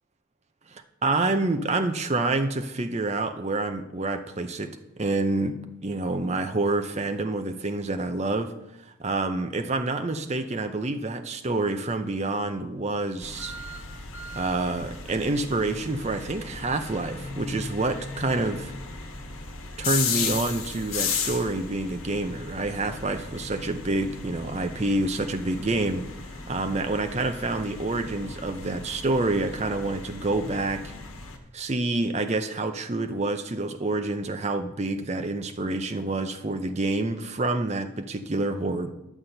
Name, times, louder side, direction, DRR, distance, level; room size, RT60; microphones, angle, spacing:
voice 1, 0.7-8.5 8.8-13.5 14.3-18.7 19.8-26.0 26.5-30.8 31.5-38.9, right 2 dB, 30° right, 7 dB, 0.6 m, -28 dB
sound 1, 13.2-31.4, left 5 dB, 75° left, 1.3 m, -36 dB
11.0 x 4.3 x 7.8 m, 0.92 s
head